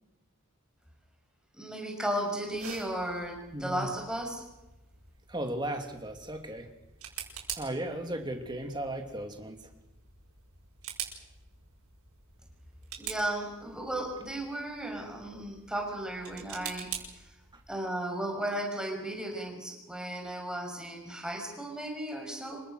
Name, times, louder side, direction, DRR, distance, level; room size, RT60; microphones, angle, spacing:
voice 1, 1.5-4.4 13.0-16.9 17.1-17.3 17.7-22.6, right 1 dB, 5° right, 1 dB, 6.1 m, -35 dB
sound 1, 2.5-17.8, right 8 dB, 85° right, 6.4 m, -46 dB
voice 2, 3.5-3.9 5.3-6.7 7.6-9.7, right 1 dB, 20° right, 5 dB, 2.9 m, -36 dB
27.5 x 23.5 x 6.5 m, 0.96 s
head